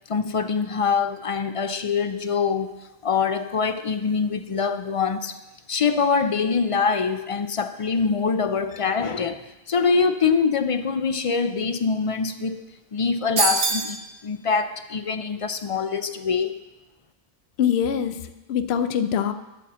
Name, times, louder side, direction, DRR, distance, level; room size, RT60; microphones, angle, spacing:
voice 1, 0.1-2.7 3.0-5.3 5.7-12.6 12.9-16.6, left 5 dB, 50° left, 10 dB, 0.4 m, -24 dB
sound 1, 13.4-14.0, right 4 dB, 65° right, 1.2 m, -22 dB
voice 2, 17.6-19.3, left 8 dB, 80° left, 10 dB, 0.8 m, -24 dB
11.5 x 4.2 x 7.2 m, 1.0 s
omnidirectional pair, 1.1 m